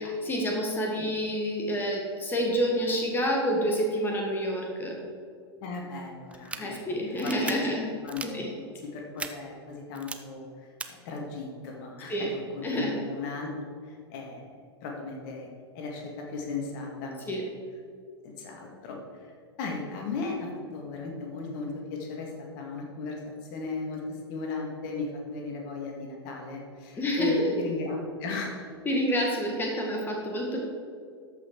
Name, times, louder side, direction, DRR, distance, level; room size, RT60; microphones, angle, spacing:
voice 1, 0.0-5.0 6.6-7.9 8.3-8.5 12.1-12.3 12.6-13.0 17.3-17.4 27.0-27.5 28.9-30.6, equal, 15° left, -1 dB, 1.8 m, -28 dB
voice 2, 5.6-7.7 8.0-13.5 13.8-14.5 14.8-15.5 15.7-17.4 18.2-19.3 19.6-28.7, left 4 dB, 50° left, 1 dB, 2.0 m, -36 dB
sound 1, 6.3-6.6 7.2-7.5 8.1-8.3 9.2-9.3 9.9-10.1 10.8-10.9, right 4 dB, 10° right, 0.6 m, -36 dB
13.5 x 5.9 x 4.8 m, 2.2 s
figure-of-eight pair, 95°, 14 cm